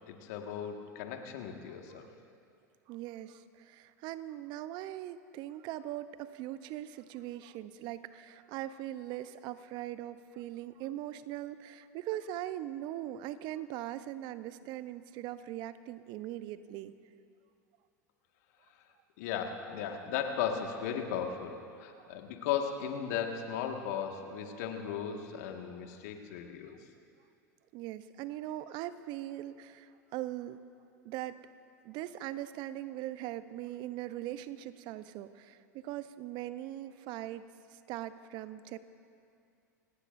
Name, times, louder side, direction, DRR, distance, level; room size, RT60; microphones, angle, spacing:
voice 1, 0.1-2.1 19.2-26.8, left 8 dB, 65° left, 3 dB, 1.8 m, -36 dB
voice 2, 2.9-16.9 22.0-22.2 27.7-30.6 31.0-31.4 31.8-38.8, right 13 dB, 50° right, 13 dB, 0.8 m, -41 dB
26.5 x 18.5 x 2.7 m, 2.5 s
hypercardioid pair, 85°, 10 cm